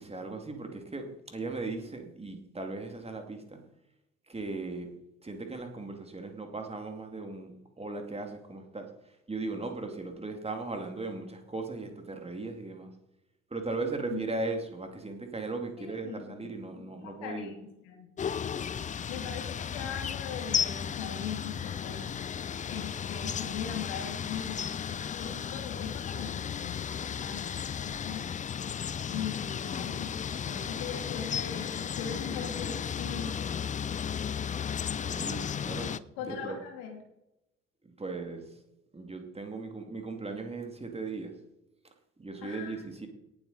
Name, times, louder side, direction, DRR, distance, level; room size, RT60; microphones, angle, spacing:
voice 1, 0.1-3.6 4.3-4.9 5.2-8.9 9.3-12.9 13.5-17.5 35.0-36.0 36.2-36.6 38.0-38.4 38.9-41.3 42.2-43.1, right 3 dB, 15° right, 4 dB, 2.5 m, -37 dB
voice 2, 13.8-14.2 15.8-16.5 16.7-18.1 19.1-22.2 22.7-28.3 29.1-30.2 30.4-33.6 36.2-37.0 42.4-43.1, left 7 dB, 65° left, 3 dB, 2.7 m, -40 dB
sound 1, 18.2-36.0, left 7 dB, 20° left, 0.5 m, -34 dB
18.0 x 8.0 x 4.2 m, 0.90 s
figure-of-eight pair, 55°, 37 cm